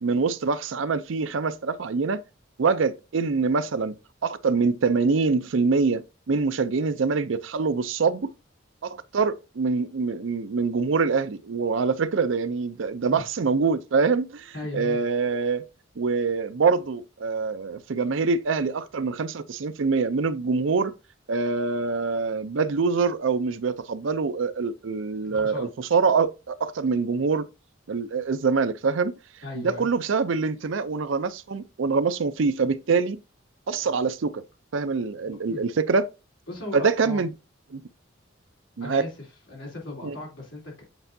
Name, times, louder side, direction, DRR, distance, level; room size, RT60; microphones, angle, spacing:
voice 1, 0.0-2.2 2.6-3.9 4.2-8.3 8.8-15.6 16.0-20.9 21.3-27.5 27.9-29.1 29.6-33.2 33.7-34.4 34.7-36.1 36.7-37.3 37.7-37.8 38.8-39.0 40.0-40.2, right 4 dB, 75° right, 0.5 m, -25 dB
voice 2, 14.5-15.0 25.2-25.7 29.4-29.9 35.2-35.6 36.5-37.2 38.8-39.1 39.5-40.8, left 2 dB, 75° left, 3.3 m, -37 dB
8.0 x 4.5 x 2.6 m
head